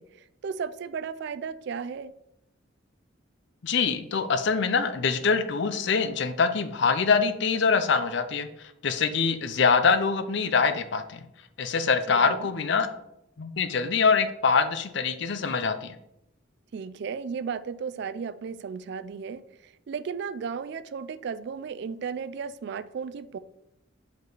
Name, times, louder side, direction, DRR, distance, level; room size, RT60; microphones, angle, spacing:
voice 1, 0.0-2.1 12.1-12.5 16.7-23.4, right 6 dB, 60° right, 14 dB, 0.3 m, -35 dB
voice 2, 3.6-8.5 8.8-11.2 11.6-12.9 13.4-15.9, left 5 dB, 60° left, 11 dB, 0.5 m, -24 dB
5.2 x 4.6 x 3.9 m, 0.82 s
head